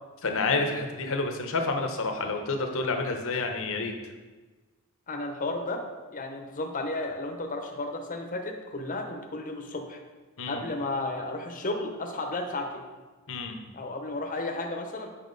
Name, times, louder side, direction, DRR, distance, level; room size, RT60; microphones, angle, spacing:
voice 1, 0.2-4.1 10.4-10.6 13.3-13.5, left 3 dB, 65° left, 4 dB, 0.9 m, -29 dB
voice 2, 5.1-5.8 6.1-10.0 10.5-12.8 13.7-15.1, left 2 dB, 40° left, 3 dB, 0.9 m, -33 dB
8.4 x 5.8 x 4.0 m, 1.3 s
head